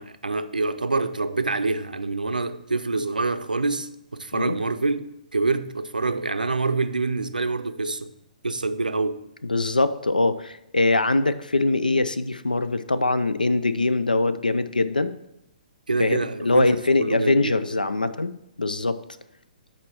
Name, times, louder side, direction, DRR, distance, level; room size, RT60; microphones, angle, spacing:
voice 1, 0.0-5.0 5.3-8.1 8.4-9.2 15.9-16.7 17.0-17.6, right 3 dB, 80° right, 0.5 m, -26 dB
voice 2, 9.4-15.1 16.0-18.3 18.6-19.0, left 2 dB, 80° left, 0.4 m, -22 dB
8.5 x 4.3 x 4.4 m
figure-of-eight pair, 125°, 5 cm